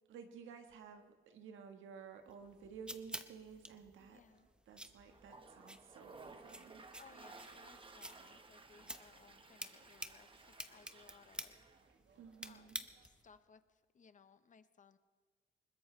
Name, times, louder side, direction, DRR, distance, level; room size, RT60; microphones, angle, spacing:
voice 1, 0.1-4.2 4.7-6.8 12.1-12.8, right 6 dB, 80° right, 6 dB, 1.5 m, -54 dB
sound 1, 2.3-13.3, right 1 dB, 5° right, 1.0 m, -51 dB
voice 2, 4.0-4.5 7.0-11.7 12.4-15.0, left 6 dB, 40° left, 12 dB, 1.0 m, -64 dB
Toilet flush, 5.1-11.9, right 3 dB, 25° right, 1.3 m, -57 dB
sound 2, 6.0-13.1, right 5 dB, 65° right, 1.5 m, -71 dB
21.5 x 20.5 x 3.3 m, 1.5 s
cardioid pair, 90°, 20 cm